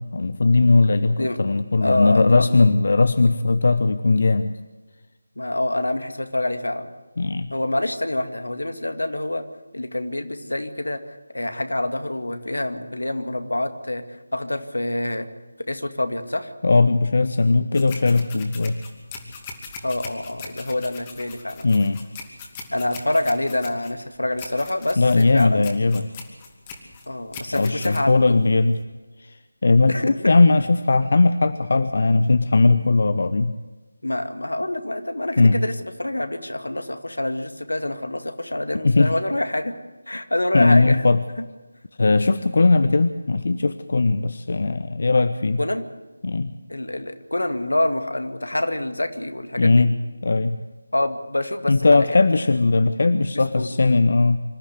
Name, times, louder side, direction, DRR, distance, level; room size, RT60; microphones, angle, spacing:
voice 1, 0.0-4.6 7.2-7.5 16.6-18.8 21.6-22.0 25.0-26.1 27.5-28.7 29.2-33.5 35.4-35.6 38.8-39.1 40.5-41.2 42.0-45.6 46.2-46.5 49.6-49.9 50.2-50.6 51.7-54.4, left 3 dB, 55° left, 12 dB, 0.9 m, -18 dB
voice 2, 1.2-1.5 1.8-2.6 5.4-6.9 7.5-9.4 9.7-15.3 15.7-16.5 19.8-21.7 22.7-25.7 27.1-28.4 29.9-30.3 34.0-39.8 40.1-41.1 45.6-45.9 46.7-49.9 50.9-52.2 53.5-53.7, left 1 dB, 75° left, 8 dB, 2.2 m, -26 dB
sound 1, 17.7-28.8, left 4 dB, 20° left, 2.6 m, -40 dB
26.0 x 13.0 x 8.2 m, 1.3 s
figure-of-eight pair, 160°, 0 cm